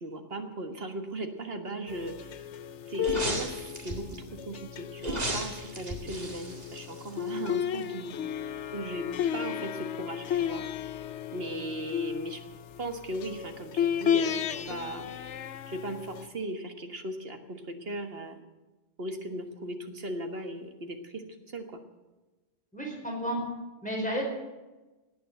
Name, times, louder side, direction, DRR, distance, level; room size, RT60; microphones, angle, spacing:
voice 1, 0.0-2.5 2.9-3.5 3.8-8.2 8.7-9.1 9.3-10.6 11.3-12.4 12.8-15.1 15.7-18.4 19.0-21.8, right 1 dB, 60° right, 5 dB, 1.9 m, -37 dB
sound 1, 1.9-16.3, left 9 dB, 90° left, 1.0 m, -34 dB
sound 2, 3.0-4.2 5.0-7.5 7.8-7.9, right 1 dB, 35° right, 2.2 m, -35 dB
voice 2, 22.7-23.4 23.8-24.2, equal, 5° left, -2 dB, 5.0 m, -31 dB
18.5 x 9.2 x 7.8 m, 1.1 s
omnidirectional pair, 1.2 m